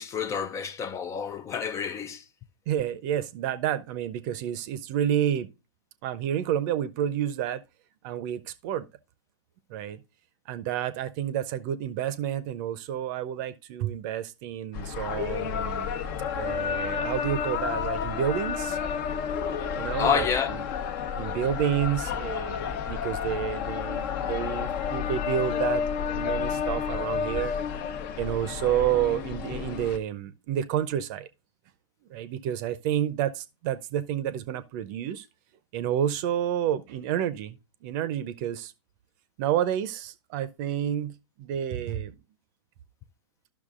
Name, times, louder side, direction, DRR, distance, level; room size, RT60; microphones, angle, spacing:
voice 1, 0.0-2.2 20.0-20.6, left 7 dB, 20° left, 0.4 m, -28 dB
voice 2, 2.7-5.5 6.0-7.6 8.0-8.9 9.7-10.0 10.5-15.9 16.3-18.8 19.8-20.6 21.1-25.8 26.1-27.5 28.2-31.3 32.1-35.3 35.7-38.7 39.4-42.2, right 10 dB, 45° right, 0.7 m, -29 dB
sound 1, 14.7-30.0, left 7 dB, 45° left, 1.0 m, -31 dB
12.0 x 6.1 x 2.5 m
hypercardioid pair, 115°, 14 cm